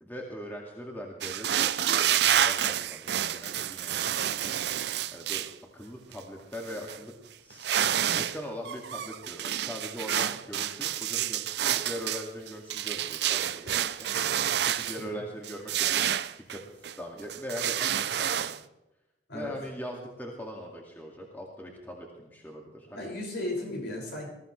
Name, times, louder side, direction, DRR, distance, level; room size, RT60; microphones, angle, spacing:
voice 1, 0.0-4.8 5.1-7.1 7.4-14.1 14.4-16.0 16.5-16.6 17.0-18.6 19.3-23.1, equal, 10° left, -1 dB, 2.2 m, -41 dB
sound 1, 1.2-5.5 6.1-6.2 6.5-7.0 7.5-8.4 8.6-15.0 15.4-17.0 17.3-18.6, right 10 dB, 60° right, 0.5 m, -29 dB
voice 2, 22.9-24.3, left 1 dB, 65° left, -1 dB, 6.2 m, -35 dB
21.0 x 15.0 x 3.3 m, 0.96 s
head